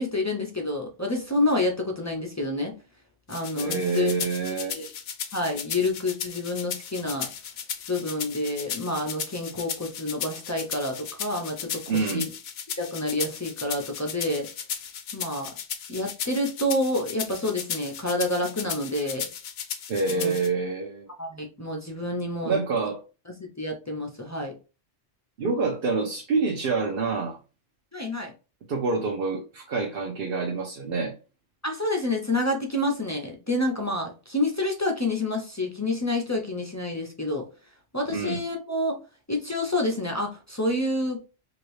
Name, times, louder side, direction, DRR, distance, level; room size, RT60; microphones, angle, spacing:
voice 1, 0.0-2.7 3.3-4.1 4.6-4.9 5.3-7.3 7.9-12.3 12.8-14.5 15.1-15.5 15.9-19.3 20.1-20.4 21.2-22.6 23.4-24.5 27.9-28.3 31.6-37.5 37.9-39.0 39.3-41.2, left 1 dB, 25° left, 0.4 m, -28 dB
sound 1, 3.3-20.5, left 8 dB, 65° left, 0.8 m, -35 dB
voice 2, 3.6-4.7 11.9-12.3 19.9-21.1 22.4-23.0 25.4-27.4 28.7-31.1 38.1-38.4, right 4 dB, 60° right, 0.8 m, -27 dB
2.8 x 2.6 x 3.2 m
omnidirectional pair, 1.2 m